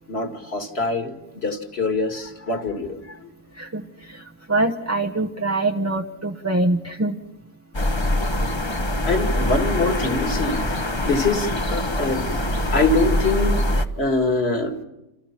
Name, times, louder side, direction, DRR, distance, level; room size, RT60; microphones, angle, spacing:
voice 1, 0.1-1.1 1.4-3.3 9.1-10.8 11.0-12.4 12.7-13.6 14.0-14.8, left 3 dB, 45° left, 5 dB, 2.4 m, -24 dB
voice 2, 3.5-7.2, right 2 dB, 15° right, 1 dB, 0.9 m, -24 dB
sound 1, 7.7-13.9, left 1 dB, 20° left, 1.1 m, -23 dB
28.5 x 28.0 x 5.9 m, 0.96 s
omnidirectional pair, 1.6 m